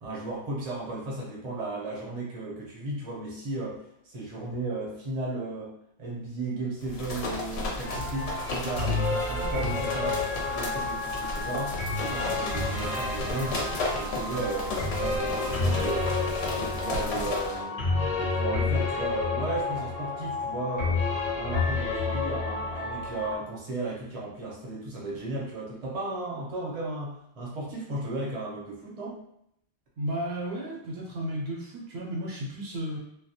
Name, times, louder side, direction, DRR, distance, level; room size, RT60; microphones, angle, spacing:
voice 1, 0.0-5.7 6.0-16.1 16.4-21.0 21.3-29.2, right 2 dB, 40° right, -4 dB, 0.6 m, -35 dB
sound 1, 6.8-17.6, left 2 dB, 70° left, 0.8 m, -34 dB
sound 2, 7.8-23.4, left 3 dB, 40° left, 0.6 m, -30 dB
voice 2, 30.0-33.0, equal, 65° right, -4 dB, 0.8 m, -33 dB
2.3 x 2.1 x 2.7 m, 0.75 s
omnidirectional pair, 1.2 m